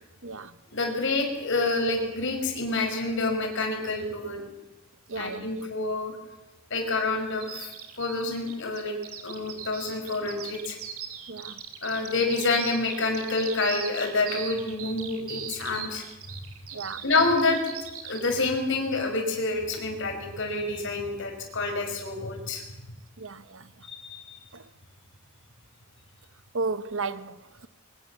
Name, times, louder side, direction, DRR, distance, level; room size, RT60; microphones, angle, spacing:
voice 1, 0.7-4.4 5.2-6.1 6.7-10.8 11.8-16.0 17.0-17.6 18.0-22.6 23.8-24.4, left 3 dB, 60° left, 5.9 m, -28 dB
voice 2, 5.1-5.5 11.3-11.6 15.7-15.9 16.7-17.0 23.2-23.7 24.5-24.6 26.5-27.4, right 4 dB, 60° right, 1.1 m, -34 dB
Bird vocalization bird call bird song, 7.4-18.5, right 9 dB, 80° right, 3.2 m, -40 dB
23.0 x 21.0 x 7.4 m
head